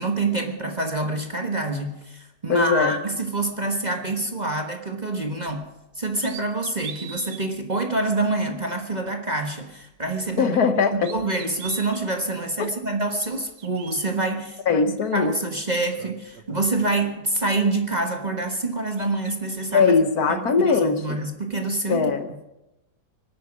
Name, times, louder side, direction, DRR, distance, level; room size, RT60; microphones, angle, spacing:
voice 1, 0.0-5.6 6.0-14.6 15.1-20.0 20.3-22.1, right 2 dB, 25° right, 4 dB, 1.3 m, -26 dB
voice 2, 2.5-2.9 10.4-11.1 12.6-12.7 14.7-15.3 19.7-21.2 21.9-22.3, left 5 dB, 65° left, 9 dB, 1.5 m, -20 dB
sound 1, 5.4-5.7 6.1-7.5 8.1-8.2 10.0-10.7 10.9-12.1 12.9-14.1 15.3-15.4 15.8-17.5 17.8-18.6 18.9-19.8, right 8 dB, 90° right, 1.7 m, -43 dB
25.5 x 8.8 x 6.1 m, 0.95 s
omnidirectional pair, 1.9 m